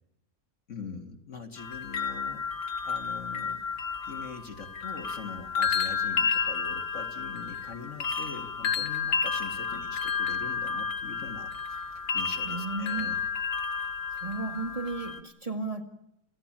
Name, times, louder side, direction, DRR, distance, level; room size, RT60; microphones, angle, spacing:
voice 1, 0.7-2.5 2.8-3.6 4.1-13.2, left 4 dB, 55° left, 4 dB, 2.2 m, -43 dB
sound 1, 1.6-15.2, left 5 dB, 80° left, 2.1 m, -31 dB
voice 2, 12.5-13.2 14.2-15.8, right 3 dB, 25° right, 4 dB, 2.0 m, -34 dB
29.0 x 16.0 x 8.9 m, 0.82 s
omnidirectional pair, 1.6 m